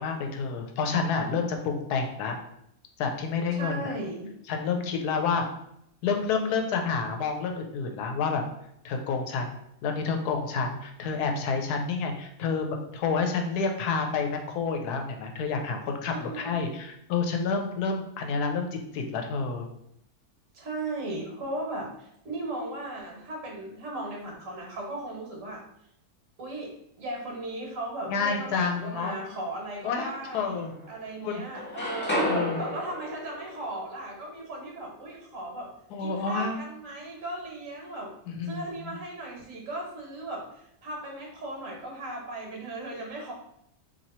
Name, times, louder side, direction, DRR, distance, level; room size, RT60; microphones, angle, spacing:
voice 1, 0.0-2.4 3.0-3.9 4.5-5.5 6.0-8.4 8.8-9.6 9.8-19.7 28.1-29.2 29.8-30.1 30.3-30.8 31.2-31.4 32.2-32.6 35.9-36.6 38.3-39.0, left 5 dB, 85° left, 4 dB, 1.1 m, -29 dB
voice 2, 3.5-4.3 16.1-16.6 20.5-25.6 26.4-35.7 36.0-38.1 38.4-43.3, right 1 dB, 60° right, -1 dB, 1.3 m, -37 dB
sound 1, 28.7-29.5 30.1-31.1 31.4-35.3, equal, 10° left, 0.7 m, -34 dB
3.0 x 2.7 x 4.1 m, 0.77 s
omnidirectional pair, 1.7 m